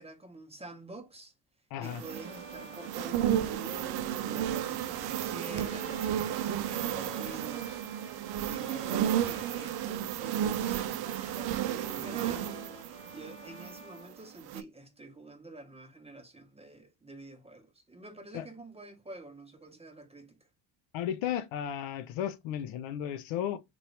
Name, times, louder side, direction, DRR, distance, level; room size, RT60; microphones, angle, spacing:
voice 1, 0.0-1.3 1.8-20.4, right 2 dB, 10° right, 0.9 m, -48 dB
voice 2, 1.7-2.0 18.3-18.4 20.9-23.6, left 10 dB, 75° left, 0.7 m, -34 dB
sound 1, 1.8-14.0 14.4-14.6, right 11 dB, 50° right, 0.5 m, -33 dB
Bowed string instrument, 2.0-9.9 10.2-14.9, left 3 dB, 15° left, 0.6 m, -50 dB
3.0 x 2.6 x 3.1 m
supercardioid pair, 65°, 48 cm